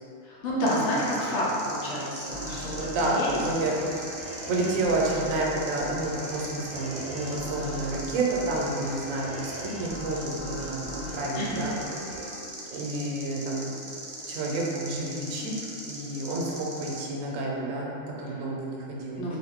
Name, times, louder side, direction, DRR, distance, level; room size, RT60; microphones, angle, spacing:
voice 1, 0.2-3.3 11.3-11.7 19.2-19.4, equal, 65° left, -6 dB, 0.9 m, -29 dB
sound 1, 0.7-17.0, right 1 dB, 60° right, 0.4 m, -40 dB
sound 2, 2.3-13.5, equal, 25° left, 0.8 m, -39 dB
voice 2, 2.5-3.9 4.5-11.7 12.7-13.7 14.3-15.5 15.9-19.2, right 2 dB, 85° right, -2 dB, 1.0 m, -30 dB
2.5 x 2.4 x 3.4 m, 2.7 s
omnidirectional pair, 1.3 m